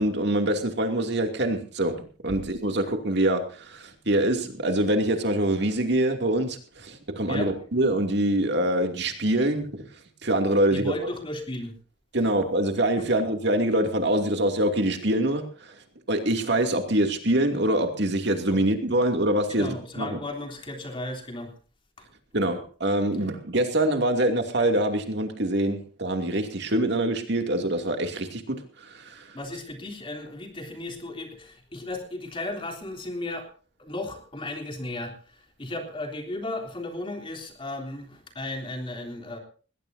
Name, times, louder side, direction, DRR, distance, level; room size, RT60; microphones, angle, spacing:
voice 1, 0.0-1.9 2.2-9.8 10.2-10.9 12.1-15.8 16.1-20.2 22.3-28.6 28.8-29.3, right 1 dB, 60° right, 5 dB, 2.7 m, -25 dB
voice 2, 10.7-11.7 13.0-13.1 18.5-18.6 19.5-21.5 22.0-22.1 22.4-22.5 29.3-33.5 33.8-39.4, left 2 dB, 30° left, 4 dB, 3.4 m, -35 dB
20.0 x 18.0 x 2.8 m, 0.39 s
head